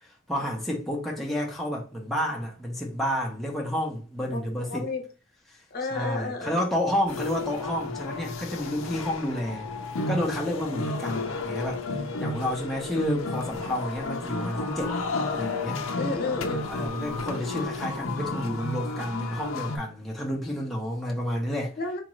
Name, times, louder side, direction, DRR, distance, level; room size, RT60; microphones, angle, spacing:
voice 1, 0.0-4.9 5.9-9.7 10.1-11.8 12.2-15.0 15.3-15.8 16.7-21.8, equal, ahead, 0.6 m, -30 dB
voice 2, 4.3-5.0 5.7-6.6 15.9-16.7 21.8-22.0, left 3 dB, 50° left, 0.7 m, -31 dB
sound 1, 7.1-19.8, left 3 dB, 90° left, 0.5 m, -32 dB
3.9 x 2.4 x 3.0 m
head